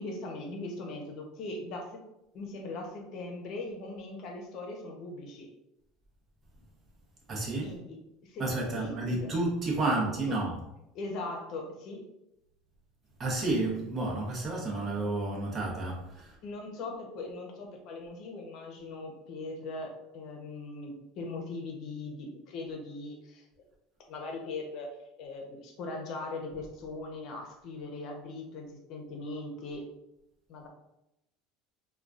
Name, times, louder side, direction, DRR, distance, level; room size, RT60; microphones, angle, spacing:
voice 1, 0.0-2.0 2.3-5.5 7.6-8.5 8.7-9.3 9.8-10.4 10.9-12.0 16.4-23.5 24.1-24.9 25.2-29.9 30.5-30.7, left 2 dB, 50° left, 2 dB, 0.8 m, -40 dB
voice 2, 7.3-7.8 8.4-10.6 13.2-16.3, right 2 dB, 30° right, -2 dB, 0.9 m, -31 dB
3.6 x 2.3 x 2.5 m, 0.88 s
supercardioid pair, 135°, 0 cm